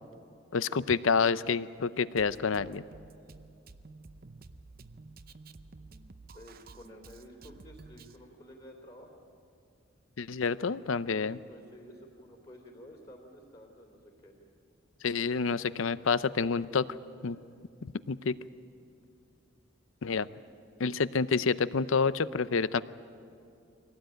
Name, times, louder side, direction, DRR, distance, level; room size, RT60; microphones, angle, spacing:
voice 1, 0.5-2.8 10.2-11.4 15.0-16.9 17.2-17.4 17.8-18.3 20.0-20.3 20.8-22.8, left 5 dB, 70° left, 16 dB, 0.6 m, -28 dB
Drum kit, 2.2-8.2, right 3 dB, 45° right, 0.7 m, -52 dB
voice 2, 6.3-9.2 11.5-14.3 17.2-17.4, equal, 30° left, -1 dB, 3.3 m, -52 dB
23.5 x 18.0 x 9.1 m, 2.5 s
head